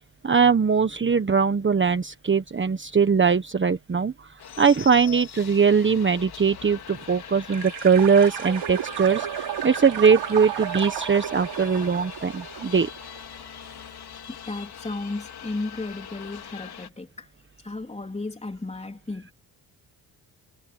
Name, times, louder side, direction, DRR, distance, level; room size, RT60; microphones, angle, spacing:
voice 1, 0.2-4.3 4.6-12.9, right 6 dB, 25° right, 1.3 m, -21 dB
sound 1, 4.4-16.9, left 9 dB, 60° left, 4.3 m, -42 dB
sound 2, 7.5-13.2, right 11 dB, 80° right, 3.2 m, -33 dB
voice 2, 14.5-17.3 17.6-19.3, left 2 dB, 15° left, 3.5 m, -34 dB
cardioid pair, 75°, 42 cm